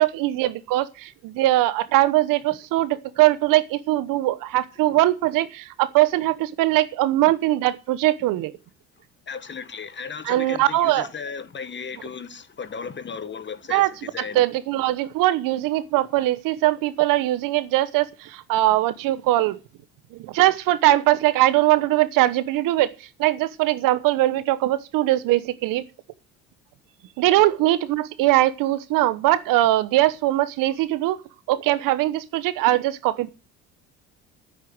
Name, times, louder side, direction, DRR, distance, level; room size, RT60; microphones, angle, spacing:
voice 1, 0.0-8.5 10.2-11.1 13.7-13.9 14.2-19.6 20.1-22.9 23.2-25.8 27.2-31.2 31.5-33.3, right 15 dB, 70° right, 1.1 m, -21 dB
voice 2, 9.3-14.4, left 6 dB, 30° left, 1.4 m, -35 dB
9.4 x 8.9 x 7.8 m
hypercardioid pair, 70°, 35 cm